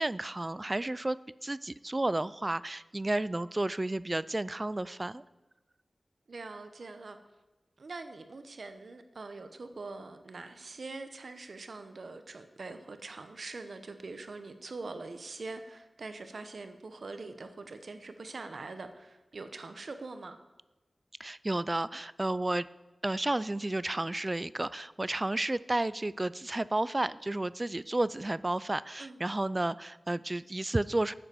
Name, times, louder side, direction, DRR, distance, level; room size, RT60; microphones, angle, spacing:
voice 1, 0.0-5.2 21.2-22.7 23.0-31.1, right 2 dB, 25° right, 18 dB, 0.3 m, -32 dB
voice 2, 6.3-7.2 7.8-20.4 29.0-29.2, right 3 dB, 70° right, 8 dB, 1.0 m, -43 dB
9.5 x 8.6 x 7.0 m, 1.1 s
wide cardioid pair, 95°, 0 cm